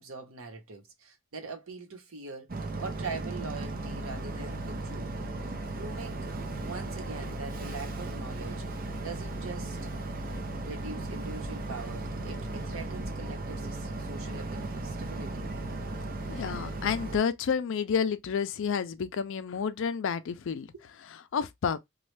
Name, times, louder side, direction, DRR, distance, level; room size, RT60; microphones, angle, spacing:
voice 1, 0.0-2.5 2.8-5.1 5.8-6.3 6.6-8.8 9.0-9.8 10.6-15.5 16.6-16.7 20.7-20.8, right 4 dB, 75° right, 1.0 m, -42 dB
Boat Water vehicle, 2.5-17.2, right 2 dB, 45° right, 0.7 m, -36 dB
voice 2, 16.3-20.7 21.3-21.8, left 6 dB, 65° left, 0.4 m, -30 dB
3.1 x 2.3 x 3.2 m
head